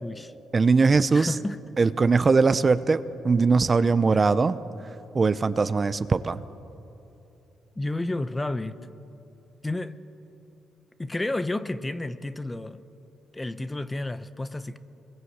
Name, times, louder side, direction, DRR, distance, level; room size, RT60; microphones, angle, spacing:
voice 1, 0.0-0.3 1.1-1.6 7.8-8.8 9.6-10.0 11.0-12.8 13.3-14.8, left 2 dB, 15° left, 0.9 m, -31 dB
voice 2, 0.5-1.3 1.8-4.5 5.1-6.4, right 4 dB, 30° right, 0.7 m, -21 dB
24.5 x 22.0 x 8.1 m
cardioid pair, 90°, 0 cm